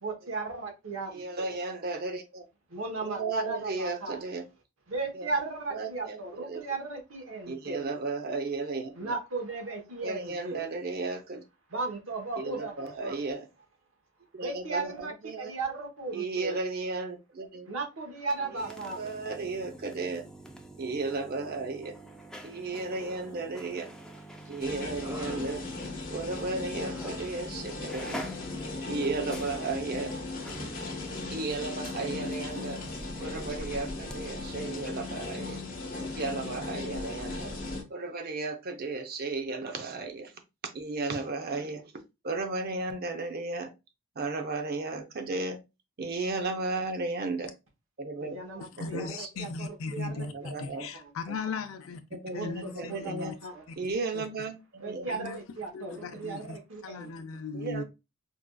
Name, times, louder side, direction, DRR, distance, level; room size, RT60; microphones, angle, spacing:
voice 1, 0.0-1.5 2.7-4.2 4.9-7.9 9.0-10.6 11.7-13.2 14.4-15.1 15.4-16.6 17.7-19.1 48.2-49.1 49.4-49.7 49.9-50.1 50.4-50.5 50.9-51.1 52.3-53.6 54.8-57.1, right 3 dB, 85° right, 1.0 m, -36 dB
voice 2, 1.1-2.5 3.0-4.5 5.1-5.3 5.7-6.6 7.5-9.1 10.0-11.4 12.4-13.5 14.3-15.5 16.1-17.7 18.5-20.2 20.8-22.0 22.4-23.9 24.5-25.7 26.1-28.3 28.9-30.1 31.3-32.8 33.2-35.6 36.2-37.5 37.9-40.3 40.7-41.8 42.2-43.7 44.2-45.6 46.0-47.5 48.0-48.4 48.9-49.3 50.1-50.9 51.3-51.4 52.1-53.3 53.8-55.1 56.1-56.2 56.4-56.5 57.5-57.8, right 3 dB, 50° right, 0.6 m, -34 dB
sound 1, 18.2-26.0 26.3-26.4 27.2-27.4 27.7-34.2 34.4-34.5, right 1 dB, 5° left, 0.4 m, -47 dB
Human voice, 23.1-23.8 24.2-26.3 26.7-27.8 28.1-28.4, right 1 dB, 15° right, 0.8 m, -50 dB
sound 2, 24.6-37.8, left 3 dB, 45° left, 0.9 m, -37 dB
voice 3, 48.6-52.0 52.3-53.3 54.1-54.2 55.1-56.6 56.8-57.8, left 4 dB, 75° left, 0.5 m, -38 dB
4.6 x 2.4 x 2.2 m
head